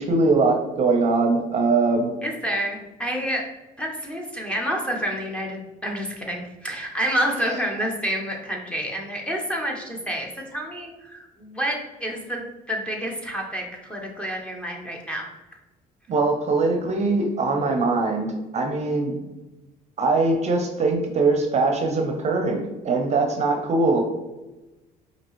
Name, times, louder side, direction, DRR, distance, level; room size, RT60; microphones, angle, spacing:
voice 1, 0.0-2.1 16.1-19.1 20.0-24.0, right 3 dB, 40° right, 3 dB, 0.7 m, -22 dB
voice 2, 2.2-3.5 3.8-15.3, equal, 5° left, 0 dB, 0.9 m, -29 dB
5.2 x 2.8 x 3.0 m, 1.1 s
cardioid pair, 110°, 17 cm